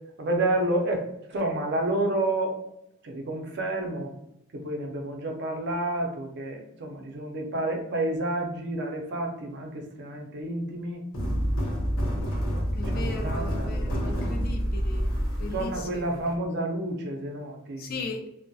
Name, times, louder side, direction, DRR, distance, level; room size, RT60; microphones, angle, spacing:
voice 1, 0.2-1.0 1.3-2.6 3.0-4.1 4.5-11.0 12.9-14.3 15.4-17.8, right 1 dB, 55° right, 2 dB, 0.5 m, -30 dB
sound 1, 11.1-16.3, equal, 85° left, 0.7 m, -28 dB
voice 2, 12.8-16.0 17.8-18.2, left 3 dB, 45° left, 4 dB, 0.3 m, -37 dB
2.6 x 2.1 x 2.2 m, 0.85 s
head